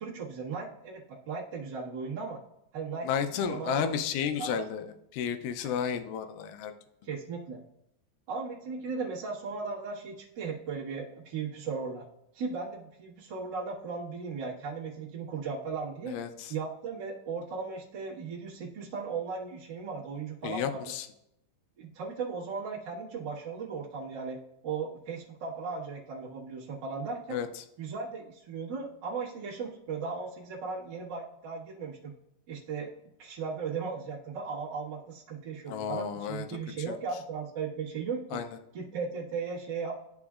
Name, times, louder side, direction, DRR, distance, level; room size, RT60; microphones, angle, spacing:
voice 1, 0.0-2.4 2.7-3.1 3.3-3.9 4.2-4.6 7.0-7.6 8.3-12.0 12.3-16.2 16.5-20.8 21.8-27.4 27.8-32.1 32.5-32.9 33.2-38.4 38.7-40.0, right 5 dB, 65° right, -7 dB, 1.0 m, -37 dB
voice 2, 3.0-4.9 5.1-6.7 16.1-16.5 20.4-21.1 27.3-27.5 35.7-36.5 36.9-37.0 38.3-38.5, left 8 dB, 80° left, 8 dB, 2.4 m, -32 dB
12.0 x 5.1 x 2.4 m, 0.82 s
omnidirectional pair, 4.4 m